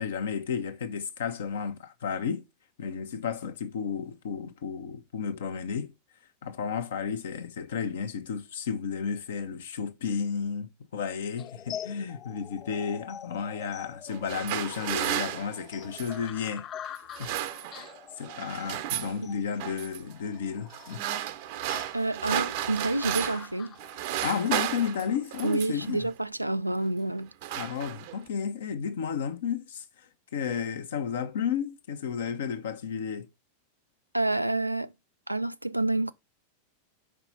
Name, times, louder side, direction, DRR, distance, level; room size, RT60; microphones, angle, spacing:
voice 1, 0.0-2.4 2.8-5.9 6.4-16.7 17.2-17.4 17.7-17.9 18.2-21.0 24.2-26.1 27.5-33.3, left 7 dB, 60° left, 1.0 m, -32 dB
sound 1, 11.4-24.4, left 10 dB, 30° left, 0.3 m, -45 dB
sound 2, 14.1-16.3 17.0-18.0 18.2-19.2 19.6-20.0 20.7-23.5 23.8-25.9 26.7-26.9 27.2-28.3, right 13 dB, 50° right, 0.7 m, -33 dB
voice 2, 21.9-23.7 25.4-27.3 34.1-34.9 35.3-36.1, right 2 dB, 90° right, 0.4 m, -28 dB
5.8 x 4.9 x 5.5 m
figure-of-eight pair, 90°, 0 cm